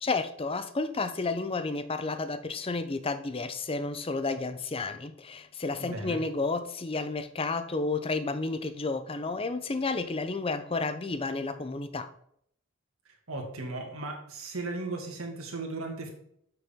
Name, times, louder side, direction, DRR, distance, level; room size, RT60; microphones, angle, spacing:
voice 1, 0.0-12.1, left 3 dB, 25° left, 10 dB, 0.6 m, -31 dB
voice 2, 5.8-6.2 13.3-16.1, right 2 dB, 75° right, 1 dB, 1.9 m, -36 dB
7.9 x 6.2 x 3.6 m, 0.69 s
head